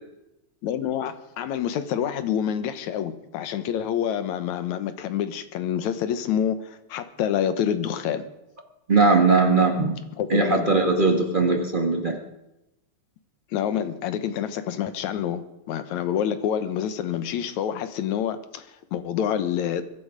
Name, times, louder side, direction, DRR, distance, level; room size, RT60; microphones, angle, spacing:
voice 1, 0.6-8.2 10.2-10.7 13.5-15.4 15.7-19.8, left 9 dB, 75° left, 11 dB, 2.4 m, -27 dB
voice 2, 8.9-10.0 10.3-12.2, right 3 dB, 30° right, 3 dB, 0.9 m, -20 dB
22.5 x 12.0 x 5.1 m, 0.91 s
omnidirectional pair, 3.4 m